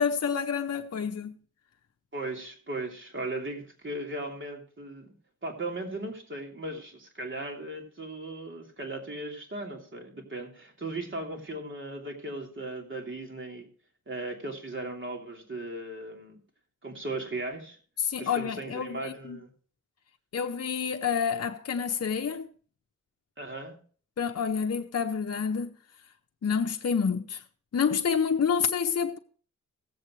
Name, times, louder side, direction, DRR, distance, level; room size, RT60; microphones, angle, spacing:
voice 1, 0.0-1.4 18.0-19.4 20.3-22.5 24.2-25.7 26.4-27.4 27.7-29.2, left 6 dB, 55° left, 0.7 m, -28 dB
voice 2, 2.1-5.1 5.4-13.7 14.1-16.4 16.8-17.8 18.2-19.5 23.4-23.8, right 2 dB, 40° right, 3.0 m, -37 dB
17.5 x 7.9 x 3.1 m
cardioid pair, 65°, 30 cm